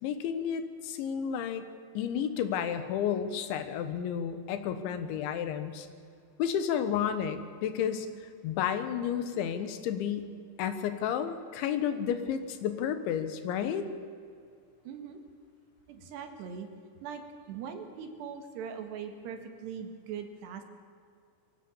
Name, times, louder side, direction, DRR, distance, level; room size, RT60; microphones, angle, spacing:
voice 1, 0.0-1.7 2.0-5.9 6.4-8.1 8.4-10.3 10.6-13.9, left 8 dB, 90° left, 9 dB, 3.7 m, -31 dB
voice 2, 14.9-15.2 15.9-16.7 17.0-17.2 17.5-20.6, right 7 dB, 70° right, 6 dB, 3.7 m, -41 dB
23.5 x 16.0 x 7.2 m, 2.3 s
omnidirectional pair, 5.1 m